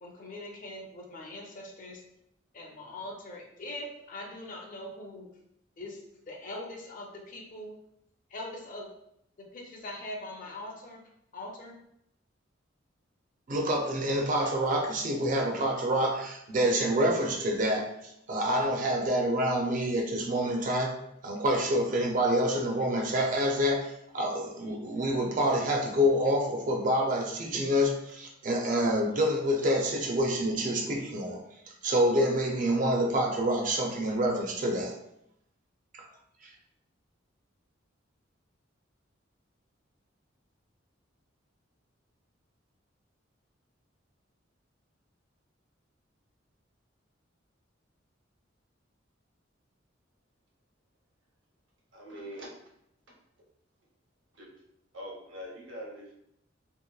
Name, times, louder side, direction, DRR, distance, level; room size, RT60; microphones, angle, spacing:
voice 1, 0.0-2.0 2.5-5.3 5.8-6.0 6.3-7.8 8.3-8.9 9.4-11.0 11.3-11.7, left 1 dB, 45° left, 0 dB, 0.5 m, -42 dB
voice 2, 13.5-17.9 18.3-20.9 21.2-23.9 24.1-31.4 31.8-35.0 35.9-36.0, equal, 40° right, 1 dB, 0.5 m, -27 dB
voice 3, 51.9-52.5 54.9-56.1, equal, 70° right, -3 dB, 0.9 m, -42 dB
2.9 x 2.5 x 2.2 m, 0.76 s
head